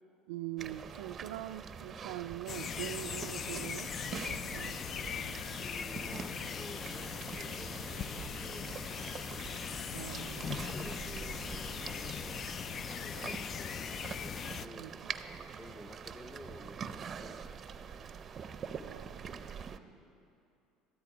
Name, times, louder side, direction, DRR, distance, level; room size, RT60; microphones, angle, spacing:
voice 1, 0.3-4.9 5.1-5.4 9.9-10.7 14.8-15.1 18.8-20.0, right 14 dB, 90° right, 9 dB, 0.4 m, -44 dB
sound 1, 0.6-19.8, right 6 dB, 40° right, 0.6 m, -45 dB
sound 2, 2.5-14.7, left 7 dB, 40° left, 0.3 m, -40 dB
voice 2, 5.6-9.3 10.1-12.5 12.9-18.0 19.7-20.3, left 1 dB, 10° left, 8 dB, 0.9 m, -52 dB
13.5 x 12.5 x 5.0 m, 2.6 s
supercardioid pair, 100°, 0 cm